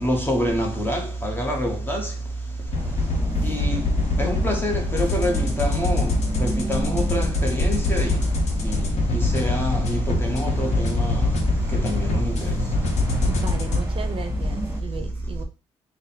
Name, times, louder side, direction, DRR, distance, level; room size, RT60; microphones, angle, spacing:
voice 1, 0.0-2.1 3.4-3.9 4.2-8.2 8.6-11.3 11.7-12.6, equal, 20° left, 1.2 m, -26 dB
sound 1, 2.6-13.8, left 2 dB, 70° left, 0.9 m, -24 dB
sound 2, 2.7-14.8, equal, 25° right, 1.4 m, -31 dB
voice 2, 13.3-15.4, right 5 dB, 50° right, 0.6 m, -35 dB
3.9 x 2.2 x 4.0 m
cardioid pair, 75°, 12 cm